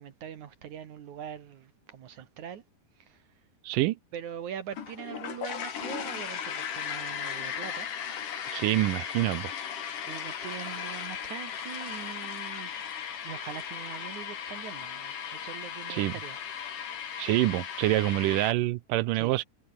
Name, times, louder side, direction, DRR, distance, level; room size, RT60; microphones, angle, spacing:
voice 1, 0.0-2.6 3.1-3.2 4.1-7.9 10.1-12.9 13.2-16.4 17.2-17.4 19.1-19.4, right 9 dB, 65° right, 2.9 m, -42 dB
voice 2, 3.6-4.0 8.5-9.5 15.9-16.1 17.2-19.4, right 17 dB, 85° right, 2.3 m, -26 dB
sound 1, 4.7-18.5, left 8 dB, 70° left, 4.1 m, -37 dB
omnidirectional pair, 3.8 m